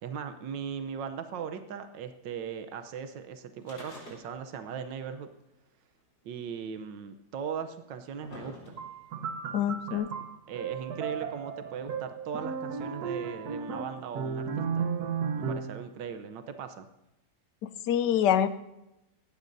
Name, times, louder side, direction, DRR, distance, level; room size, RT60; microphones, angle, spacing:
voice 1, 0.0-5.3 6.2-8.8 9.9-10.0 10.5-14.9 15.4-16.9, right 7 dB, 85° right, 9 dB, 1.5 m, -38 dB
sound 1, 3.6-4.6 4.9-5.0 6.0-6.1 7.0-7.1 7.8-9.1 10.0-10.1, left 2 dB, 90° left, 4.8 m, -47 dB
sound 2, 8.8-15.8, right 6 dB, 60° right, 1.5 m, -34 dB
voice 2, 9.5-10.1 17.8-18.5, left 10 dB, 75° left, 12 dB, 1.3 m, -25 dB
18.5 x 15.5 x 2.7 m, 0.94 s
omnidirectional pair, 1.9 m